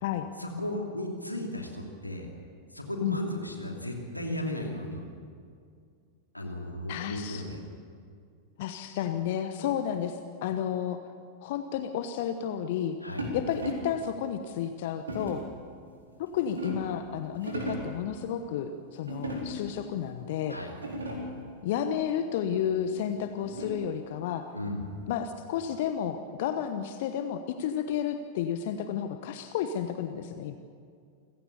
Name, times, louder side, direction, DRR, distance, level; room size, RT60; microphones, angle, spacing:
voice 1, 0.4-2.3 2.7-5.0 6.3-7.6 13.0-13.2 20.5-20.7 24.5-24.8, left 1 dB, 85° left, 2 dB, 2.9 m, -35 dB
voice 2, 6.9-7.4 8.6-11.0 11.4-13.0 13.3-15.4 16.2-20.6 21.6-24.5 25.1-30.6, left 9 dB, 50° left, 9 dB, 1.1 m, -32 dB
sound 1, 13.2-14.0 15.1-15.5 16.1-17.0 17.4-18.0 19.1-19.8 20.3-20.4 20.7-21.4 22.8-24.0, equal, 75° right, 4.4 m, -37 dB
28.0 x 16.5 x 7.0 m, 2.2 s
figure-of-eight pair, 90°, 0 cm